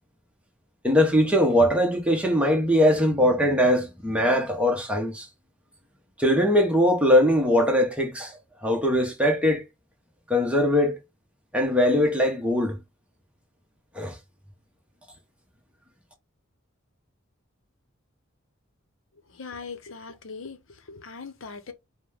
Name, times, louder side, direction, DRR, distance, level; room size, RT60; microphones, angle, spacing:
voice 1, 0.8-5.3 6.2-8.3 8.6-9.6 10.3-11.0 11.5-12.8 13.9-14.2, equal, 5° right, 0.9 m, -21 dB
voice 2, 19.3-21.7, left 4 dB, 70° left, 0.8 m, -40 dB
4.9 x 2.1 x 3.5 m
head